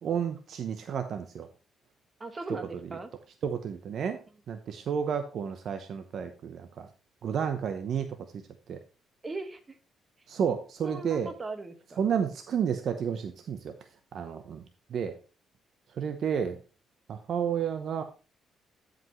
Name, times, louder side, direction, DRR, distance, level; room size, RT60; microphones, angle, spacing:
voice 1, 0.0-1.5 3.4-4.2 4.5-6.9 7.2-8.2 8.7-8.8 10.3-11.3 12.0-13.7 14.1-14.6 14.9-15.1 16.0-16.6 17.1-18.0, right 7 dB, 65° right, 7 dB, 0.8 m, -31 dB
voice 2, 2.2-3.1 9.2-9.8 10.8-12.0, right 3 dB, 25° right, 7 dB, 1.6 m, -39 dB
13.5 x 5.2 x 3.1 m, 0.34 s
cardioid pair, 90°, 0 cm